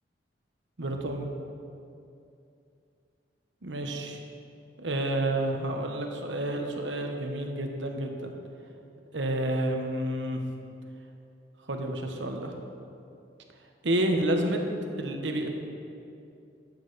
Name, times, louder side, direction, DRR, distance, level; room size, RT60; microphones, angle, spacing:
voice 1, 0.8-1.2 3.6-4.2 4.8-8.4 9.1-10.4 11.7-12.6 13.8-14.6 15.0-15.5, right 1 dB, 85° right, 3 dB, 1.2 m, -29 dB
13.0 x 8.8 x 4.2 m, 2.6 s
head